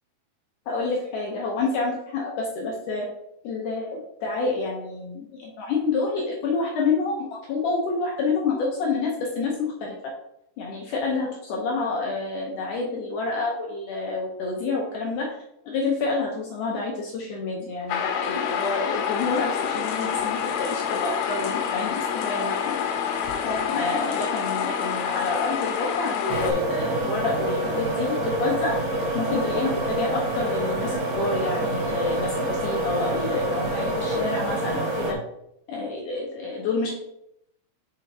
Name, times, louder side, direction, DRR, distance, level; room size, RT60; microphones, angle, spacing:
voice 1, 0.7-3.1 3.4-10.1 10.6-22.8 23.4-28.8 29.1-35.2 35.7-36.9, left 3 dB, 70° left, -1 dB, 2.1 m, -28 dB
sound 1, 17.9-26.5, left 8 dB, 90° left, 2.6 m, -27 dB
sound 2, 26.3-35.1, right 1 dB, 90° right, 3.0 m, -27 dB
6.8 x 6.4 x 2.8 m, 0.79 s
omnidirectional pair, 4.4 m